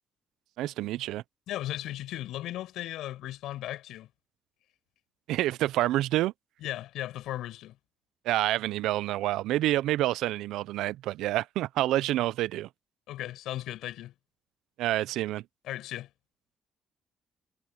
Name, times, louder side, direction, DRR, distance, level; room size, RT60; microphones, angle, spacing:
voice 1, 0.6-1.2 5.3-6.3 8.3-12.7 14.8-15.4, right 15 dB, 90° right, 0.4 m, -28 dB
voice 2, 1.5-4.1 6.6-7.8 13.1-14.1 15.6-16.1, left 14 dB, 90° left, 6.3 m, -36 dB
cardioid pair, 90°, 0 cm